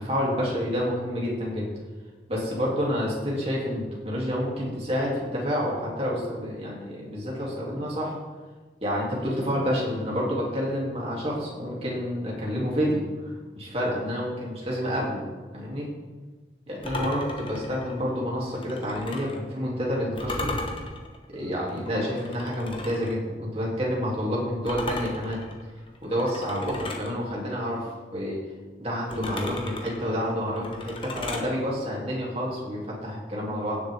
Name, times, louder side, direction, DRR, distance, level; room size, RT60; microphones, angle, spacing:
voice 1, 0.0-1.7 2.3-8.1 8.8-15.2 15.5-15.9 16.7-20.6 21.3-25.4 26.0-28.4 28.8-33.8, equal, 35° right, -4 dB, 3.2 m, -29 dB
sound 1, 16.8-19.4 20.2-23.2 24.7-27.1 29.1-31.5, left 2 dB, 30° left, 1.1 m, -36 dB
16.5 x 6.7 x 3.8 m, 1.3 s
head